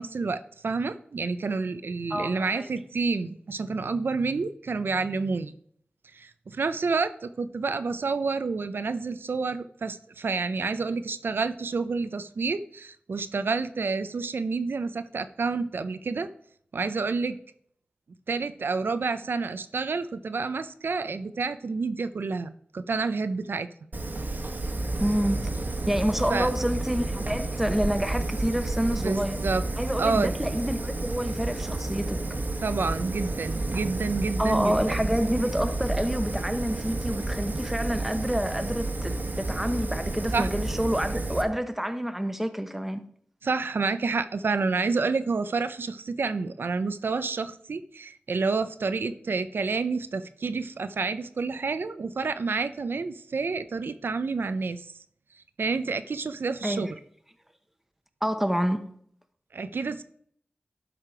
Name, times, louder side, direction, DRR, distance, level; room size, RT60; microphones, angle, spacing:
voice 1, 0.0-5.5 6.1-16.3 16.7-17.4 18.3-23.7 26.3-26.5 28.9-29.6 30.0-30.3 32.6-35.0 40.3-40.5 43.4-54.9 55.6-56.9 59.5-60.0, right 4 dB, 85° right, 0.5 m, -29 dB
voice 2, 2.1-2.7 25.0-25.5 25.9-29.4 29.8-32.2 34.4-43.0 56.6-56.9 58.2-58.8, equal, 5° right, 1.0 m, -28 dB
Fire, 23.9-41.4, right 2 dB, 55° right, 1.2 m, -31 dB
12.0 x 5.0 x 4.9 m
wide cardioid pair, 65°, 4 cm